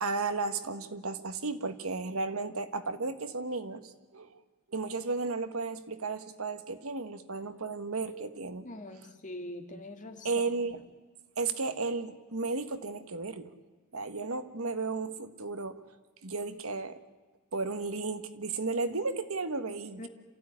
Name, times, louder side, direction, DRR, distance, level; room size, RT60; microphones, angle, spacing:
voice 1, 0.0-4.4 4.7-8.7 10.2-10.8 11.4-13.5 13.9-15.8 16.2-17.0 17.5-20.1, right 3 dB, 80° right, 10 dB, 1.5 m, -34 dB
voice 2, 8.6-10.6 20.0-20.1, left 1 dB, 35° left, 3 dB, 2.6 m, -43 dB
27.0 x 15.5 x 9.9 m, 1.3 s
head